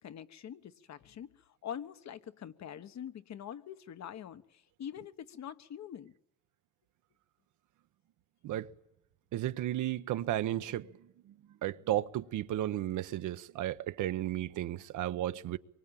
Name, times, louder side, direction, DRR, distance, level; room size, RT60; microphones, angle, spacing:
voice 1, 0.0-1.3 1.6-6.1, left 9 dB, 65° left, 1.4 m, -44 dB
voice 2, 9.3-10.9 11.6-15.6, right 13 dB, 80° right, 1.0 m, -33 dB
24.5 x 23.5 x 9.0 m
cardioid pair, 90°, 30 cm